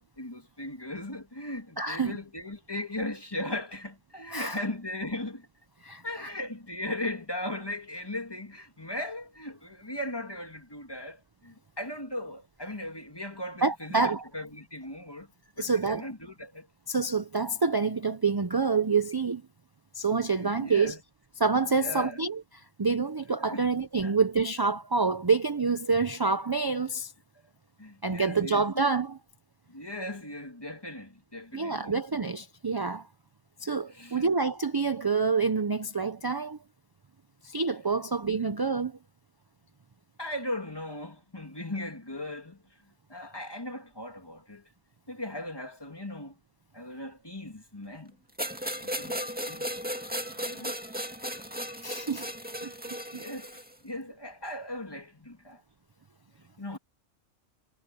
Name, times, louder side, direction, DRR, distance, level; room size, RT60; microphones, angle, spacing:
voice 1, 0.0-5.5 6.0-15.3 15.6-16.7 20.3-21.0 21.8-22.2 23.5-23.7 24.0-24.1 27.8-28.7 29.7-32.0 33.9-34.3 38.4-38.5 40.2-42.6 43.1-44.6 45.1-46.4 46.7-48.1 48.8-49.7 50.2-51.1 53.1-55.6 56.6-56.8, left 1 dB, 20° left, 2.2 m, -38 dB
voice 2, 1.8-2.2 4.3-4.6 5.8-6.3 13.6-14.2 15.6-16.0 16.9-19.4 19.9-21.0 21.4-22.4 22.8-27.1 28.0-29.2 31.5-33.1 33.6-36.6 37.4-39.0 51.8-52.3 52.6-53.2, right 4 dB, 30° right, 0.4 m, -27 dB
sound 1, 48.4-53.7, equal, 5° right, 2.0 m, -35 dB
omnidirectional pair, 1.3 m